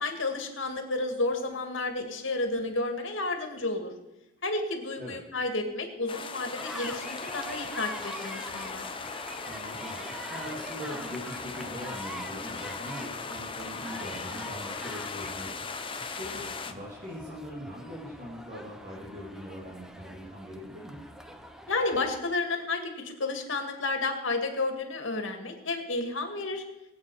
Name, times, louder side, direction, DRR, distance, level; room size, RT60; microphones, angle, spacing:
voice 1, 0.0-3.9 4.4-8.9 21.7-26.6, left 2 dB, 75° left, 5 dB, 2.2 m, -31 dB
sound 1, 6.1-16.7, left 4 dB, 25° left, 0.9 m, -38 dB
sound 2, 6.6-22.2, equal, 5° right, 0.9 m, -44 dB
voice 2, 9.4-10.0 10.3-21.0, equal, 40° right, -5 dB, 2.9 m, -41 dB
21.0 x 8.6 x 4.9 m, 0.98 s
head